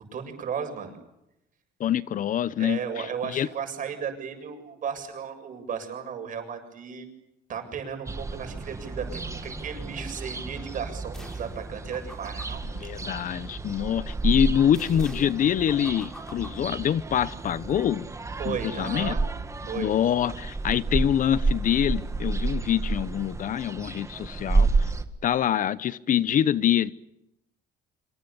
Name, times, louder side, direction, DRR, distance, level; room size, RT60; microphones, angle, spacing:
voice 1, 0.1-1.0 2.6-7.1 7.5-12.9 18.4-19.2 19.7-19.9, right 7 dB, 50° right, 7.3 m, -35 dB
voice 2, 1.8-3.5 12.8-18.1 18.5-19.2 19.7-24.7 25.2-26.9, left 10 dB, 50° left, 0.9 m, -25 dB
sound 1, 8.1-25.0, right 3 dB, 15° right, 2.0 m, -30 dB
sound 2, 11.1-11.6 11.9-13.7 14.7-17.3, right 1 dB, 5° left, 5.0 m, -48 dB
26.5 x 25.5 x 7.1 m
cardioid pair, 110°, 17 cm